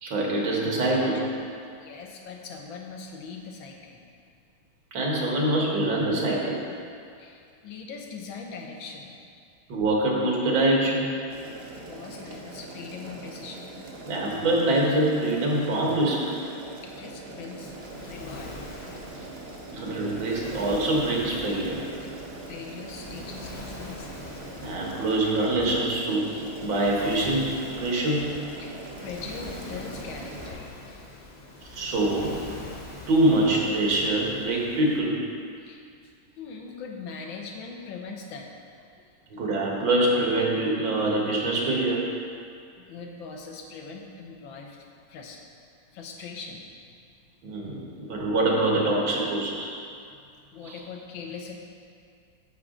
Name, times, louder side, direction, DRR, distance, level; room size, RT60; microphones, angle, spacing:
voice 1, 0.0-1.3 4.9-6.6 9.7-11.1 14.0-16.4 19.7-21.8 24.6-28.3 31.7-32.4 33.1-35.2 39.3-42.1 47.4-49.7 50.6-50.8, right 1 dB, 80° right, -3 dB, 2.2 m, -24 dB
voice 2, 1.7-4.0 7.2-9.2 11.8-13.8 16.8-17.8 18.0-18.5 22.0-22.2 22.5-24.1 28.6-31.4 35.6-35.9 36.4-39.0 42.8-45.4 45.9-46.6 47.7-47.8 50.1-50.2 50.5-51.5, left 5 dB, 90° left, 1 dB, 1.7 m, -41 dB
Boiling, 11.3-30.5, right 2 dB, 45° right, 0.8 m, -42 dB
Waves surf, 17.5-35.0, left 2 dB, 65° left, 0.4 m, -44 dB
sound 1, 23.0-23.5 25.5-26.1 28.1-28.6 30.3-31.1 32.3-33.0, left 1 dB, 20° left, 1.7 m, -47 dB
9.4 x 7.2 x 3.8 m, 2.4 s
omnidirectional pair, 2.1 m